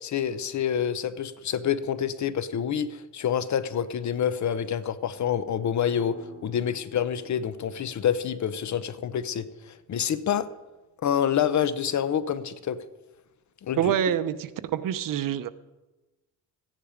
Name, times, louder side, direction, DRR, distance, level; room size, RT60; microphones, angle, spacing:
voice 1, 0.0-6.1 6.4-10.5 11.0-12.8 13.6-13.9, left 9 dB, 55° left, 14 dB, 0.8 m, -27 dB
sound 1, 5.9-11.3, equal, 15° left, 3.4 m, -51 dB
voice 2, 13.8-15.5, right 9 dB, 65° right, 13 dB, 0.8 m, -26 dB
14.0 x 10.0 x 5.0 m, 1.1 s
cardioid pair, 115°, 35 cm